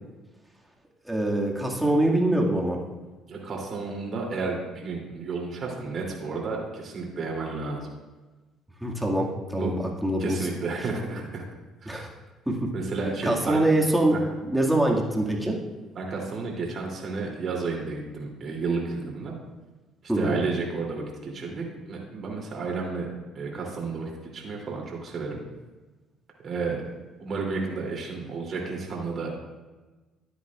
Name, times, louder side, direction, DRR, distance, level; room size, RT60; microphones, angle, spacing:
voice 1, 1.1-2.8 8.8-10.5 11.9-12.1 12.5-12.7 13.2-14.2 14.4-15.6 20.1-20.4, right 1 dB, 5° right, -2 dB, 2.1 m, -24 dB
voice 2, 3.3-7.9 9.5-9.7 10.2-11.4 11.8-12.1 12.7-13.6 14.1-14.2 15.9-19.3 20.2-23.1 23.3-25.4 26.4-26.8 27.2-29.3, right 4 dB, 50° right, -1 dB, 3.0 m, -32 dB
13.5 x 9.5 x 2.5 m, 1.2 s
supercardioid pair, 80°, 0 cm